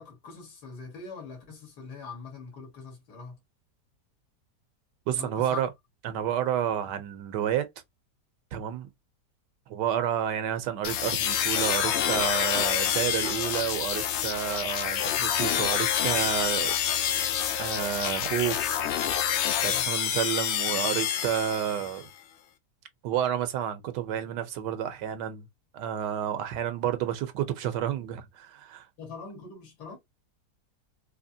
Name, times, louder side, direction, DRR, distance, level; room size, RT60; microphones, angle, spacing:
voice 1, 0.0-3.4 5.1-5.6 19.6-19.9 29.0-30.0, left 4 dB, 70° left, 2.2 m, -42 dB
voice 2, 5.1-5.7 6.0-7.7 8.5-8.9 9.7-16.7 17.6-19.2 19.6-22.1 23.0-25.5 25.7-28.9, right 10 dB, 85° right, 1.3 m, -30 dB
sound 1, 10.8-22.0, left 9 dB, 90° left, 0.6 m, -27 dB
4.2 x 2.8 x 2.7 m
omnidirectional pair, 1.8 m